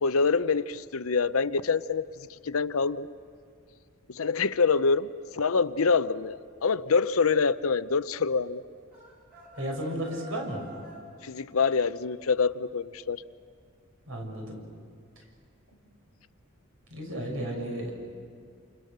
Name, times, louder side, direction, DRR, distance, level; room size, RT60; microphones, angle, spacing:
voice 1, 0.0-2.0 2.4-3.1 4.1-5.1 5.3-8.6 11.2-13.2, left 5 dB, 80° left, 0.7 m, -25 dB
sound 1, 8.9-11.1, right 2 dB, 45° right, 6.3 m, -47 dB
voice 2, 9.6-10.6 14.1-14.6 16.9-17.9, right 1 dB, 70° right, 6.6 m, -33 dB
29.5 x 28.0 x 6.8 m
head